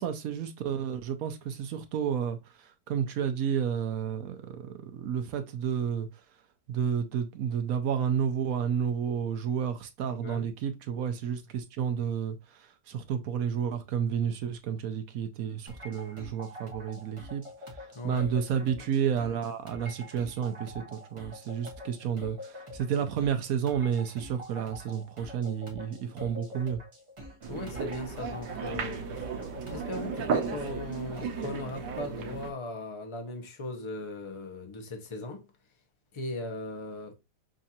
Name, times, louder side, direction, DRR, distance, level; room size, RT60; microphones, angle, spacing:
voice 1, 0.0-6.1 6.7-17.4 17.7-26.8, right 8 dB, 65° right, 1.0 m, -31 dB
voice 2, 10.1-10.5 17.9-18.8 27.5-29.1 29.7-35.5 36.1-37.1, left 2 dB, 35° left, 0.4 m, -38 dB
sound 1, 15.7-31.5, left 1 dB, 25° right, 0.8 m, -46 dB
sound 2, 27.4-32.5, right 6 dB, 85° right, 1.3 m, -34 dB
6.2 x 2.5 x 2.8 m
omnidirectional pair, 1.8 m